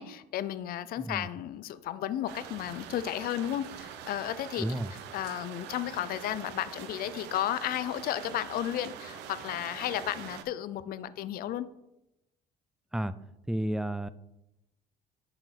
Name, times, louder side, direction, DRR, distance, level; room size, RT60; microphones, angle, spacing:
voice 1, 0.0-4.6 5.1-11.7, left 11 dB, 60° left, 15 dB, 0.5 m, -33 dB
voice 2, 1.0-1.3 4.6-4.9 12.9-13.1 13.5-14.1, right 1 dB, 5° right, 14 dB, 0.3 m, -31 dB
sound 1, 2.3-10.4, right 8 dB, 90° right, 0.7 m, -44 dB
10.5 x 4.5 x 3.9 m, 0.89 s
cardioid pair, 110°, 17 cm